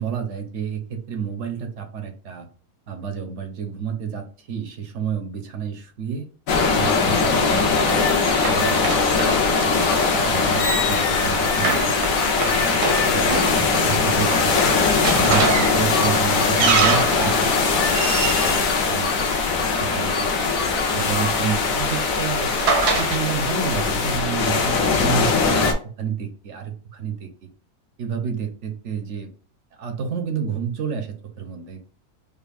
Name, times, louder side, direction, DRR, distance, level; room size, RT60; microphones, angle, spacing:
voice 1, 0.0-2.5 2.9-6.3 6.7-12.7 13.1-14.6 15.1-20.1 20.9-22.6 22.9-25.7 26.0-27.5 28.0-29.3 29.8-31.9, right 7 dB, 60° right, 6 dB, 0.8 m, -30 dB
sound 1, 6.5-25.7, left 4 dB, 65° left, 1.1 m, -21 dB
Run, 7.1-19.7 20.7-23.2, right 4 dB, 85° right, 1.4 m, -27 dB
sound 2, 9.7-24.2, left 5 dB, 85° left, 0.4 m, -29 dB
5.1 x 2.3 x 2.3 m, 0.41 s
omnidirectional pair, 1.7 m